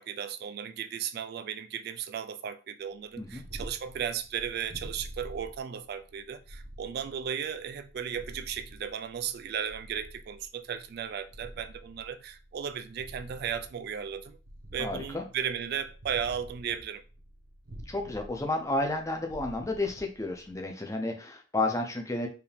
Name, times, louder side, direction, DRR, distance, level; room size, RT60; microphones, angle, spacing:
voice 1, 0.0-14.4 14.7-17.0, right 8 dB, 50° right, 0.3 m, -35 dB
Purr, 3.0-20.7, equal, 80° right, 1.1 m, -48 dB
voice 2, 14.8-15.2 17.9-22.3, left 2 dB, 15° left, 0.6 m, -31 dB
4.7 x 2.7 x 3.4 m
head